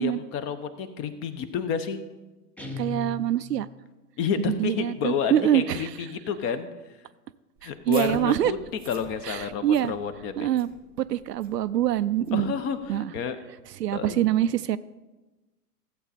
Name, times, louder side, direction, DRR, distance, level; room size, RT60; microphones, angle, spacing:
voice 1, 0.0-2.0 4.2-6.7 7.6-8.6 8.9-10.5 12.3-13.4 13.9-14.3, left 7 dB, 25° left, 10 dB, 0.8 m, -30 dB
Guitar, 2.6-3.8, left 3 dB, 5° left, 0.5 m, -37 dB
voice 2, 2.8-3.7 4.4-5.9 7.6-8.5 9.3-9.9 10.4-10.7 11.0-12.5 12.9-13.1 13.8-14.8, right 12 dB, 80° right, 14 dB, 0.6 m, -25 dB
sound 1, 7.6-12.9, right 7 dB, 20° right, 1.0 m, -48 dB
15.0 x 8.0 x 4.2 m, 1.1 s
hypercardioid pair, 120°, 48 cm